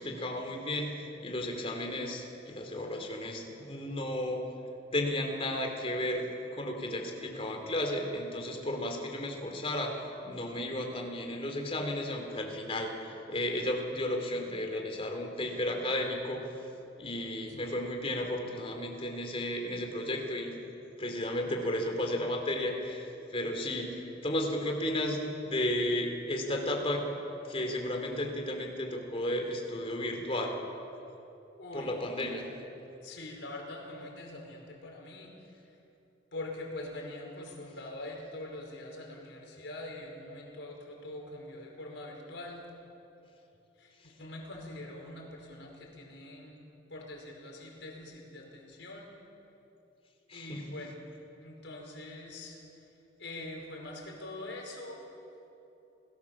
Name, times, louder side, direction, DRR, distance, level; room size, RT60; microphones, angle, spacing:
voice 1, 0.0-4.4 4.9-6.2 6.5-9.9 10.2-16.4 17.0-20.5 21.0-27.0 27.5-30.5 31.7-32.5 50.3-50.6, left 1 dB, 30° left, 3 dB, 3.3 m, -33 dB
voice 2, 31.6-32.0 32.3-32.4 33.0-35.8 36.3-42.7 43.8-46.6 46.9-49.1 50.3-50.9 51.4-52.9 53.2-55.0, left 2 dB, 70° left, 0 dB, 5.2 m, -44 dB
29.5 x 18.0 x 7.4 m, 2.9 s
head